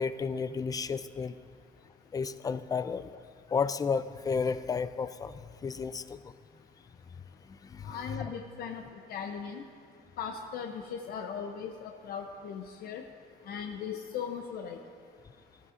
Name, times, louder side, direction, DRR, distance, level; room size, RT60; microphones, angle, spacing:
voice 1, 0.0-1.4 2.1-3.1 3.5-6.3 7.5-8.3, left 5 dB, 20° left, 14 dB, 0.4 m, -32 dB
voice 2, 7.8-8.8 9.1-9.6 10.2-13.0 13.5-14.8, left 7 dB, 65° left, 4 dB, 0.7 m, -38 dB
14.5 x 13.5 x 2.5 m, 2.2 s
cardioid pair, 110°, 17 cm